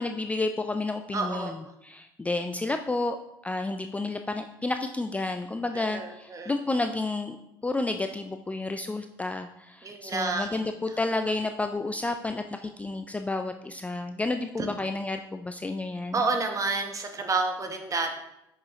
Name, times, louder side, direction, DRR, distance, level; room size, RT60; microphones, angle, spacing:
voice 1, 0.0-3.2 3.4-7.4 7.6-16.3, left 2 dB, 10° left, 7 dB, 0.4 m, -31 dB
voice 2, 1.1-1.5 5.7-6.5 9.8-10.6 16.1-18.1, right 3 dB, 30° right, 5 dB, 1.1 m, -29 dB
6.3 x 6.0 x 3.0 m, 0.86 s
hypercardioid pair, 70°, 11 cm